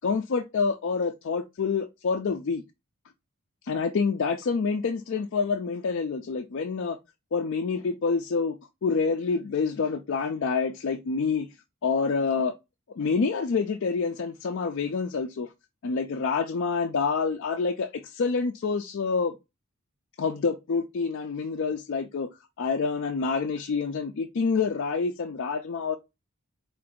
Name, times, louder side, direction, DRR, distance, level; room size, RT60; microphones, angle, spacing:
voice 1, 0.0-2.6 3.6-7.0 7.3-8.6 8.8-11.5 11.8-12.5 13.0-15.5 15.8-19.4 20.2-22.3 22.6-26.0, left 5 dB, 55° left, 0.4 m, -27 dB
4.7 x 2.5 x 3.5 m
head